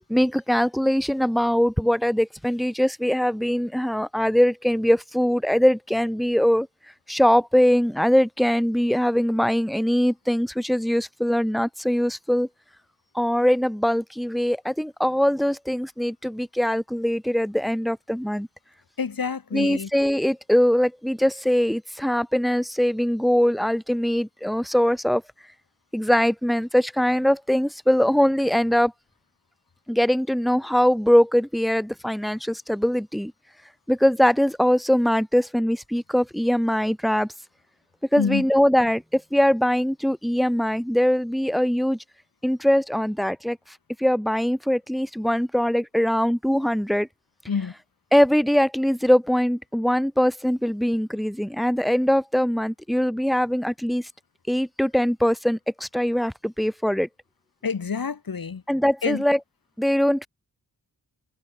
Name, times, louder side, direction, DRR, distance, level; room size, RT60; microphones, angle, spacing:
voice 1, 0.1-6.7 7.1-12.5 13.1-18.5 19.5-25.2 25.9-28.9 29.9-33.3 33.9-37.3 38.1-42.0 42.4-43.6 44.0-47.1 48.1-54.1 54.5-57.1 58.7-59.4 59.8-60.3, equal, ahead, 2.0 m, -22 dB
voice 2, 19.0-19.9 38.2-38.5 47.5-47.7 57.6-58.6 59.0-59.2, left 6 dB, 60° left, 1.8 m, -27 dB
cardioid pair, 50°, 39 cm